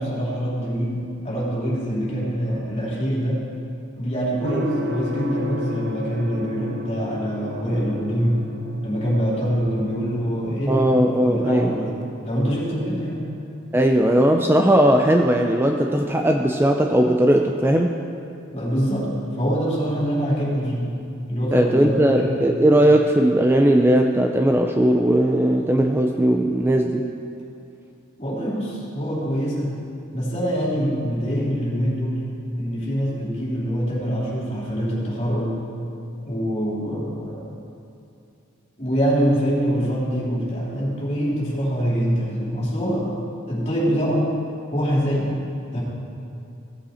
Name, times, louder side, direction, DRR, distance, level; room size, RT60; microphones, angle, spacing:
voice 1, 0.0-3.4 4.0-8.4 8.8-13.3 18.5-21.0 21.3-22.5 28.2-29.8 30.1-32.3 32.6-35.6 36.2-37.5 38.8-43.1 43.5-44.4 44.7-45.4 45.7-45.8, equal, 35° left, -6 dB, 3.1 m, -24 dB
Gong, 4.4-22.3, left 2 dB, 55° right, 0.7 m, -37 dB
voice 2, 10.7-11.9 13.7-18.0 21.5-27.1, right 1 dB, 10° right, 3 dB, 0.4 m, -18 dB
16.5 x 8.2 x 4.3 m, 2.6 s
head